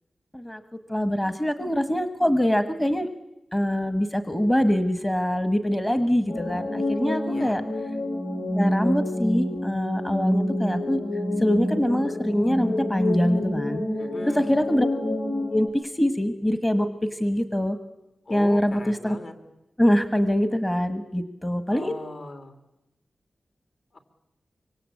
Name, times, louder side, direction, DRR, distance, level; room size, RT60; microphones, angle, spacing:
voice 1, 0.9-3.1 3.5-7.6 8.5-11.0 11.4-13.8 14.3-14.9 15.5-15.7 16.0-17.8 18.3-19.2 19.8-21.9, equal, 10° left, 10 dB, 1.3 m, -24 dB
sound 1, 6.3-15.7, left 1 dB, 85° left, 3.9 m, -27 dB
voice 2, 7.3-7.6 14.0-14.5 18.3-19.3 21.7-22.5 23.9-24.0, left 2 dB, 50° left, 6 dB, 3.2 m, -38 dB
25.5 x 24.5 x 8.5 m, 0.94 s
wide cardioid pair, 150°, 0 cm